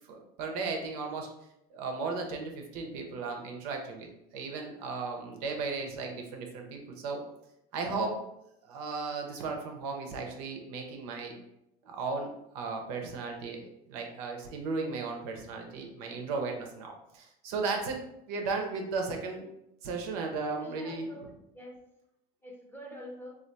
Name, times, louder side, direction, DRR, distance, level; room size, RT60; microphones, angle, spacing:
voice 1, 0.1-1.3 1.7-4.1 4.3-7.2 7.7-8.2 8.6-11.4 11.8-18.0 18.3-19.4 19.8-21.1, right 4 dB, 85° right, 2 dB, 0.7 m, -35 dB
voice 2, 20.6-21.8 22.4-23.4, equal, 10° left, -2 dB, 0.7 m, -46 dB
3.3 x 2.5 x 2.6 m, 0.81 s
supercardioid pair, 105°, 20 cm